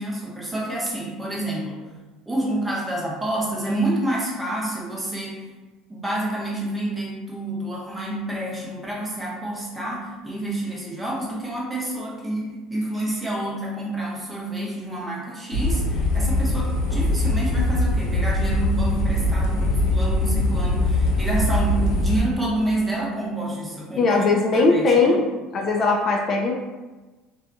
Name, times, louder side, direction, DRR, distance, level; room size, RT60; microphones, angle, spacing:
voice 1, 0.0-1.8 2.3-5.4 5.9-24.2 24.5-25.2, right 1 dB, 10° right, -4 dB, 0.7 m, -28 dB
sound 1, 15.5-22.2, left 1 dB, 70° left, 0.7 m, -22 dB
voice 2, 24.0-25.3 25.5-26.5, left 3 dB, 40° left, 0 dB, 0.3 m, -19 dB
2.7 x 2.2 x 2.5 m, 1.2 s
cardioid pair, 130°, 0 cm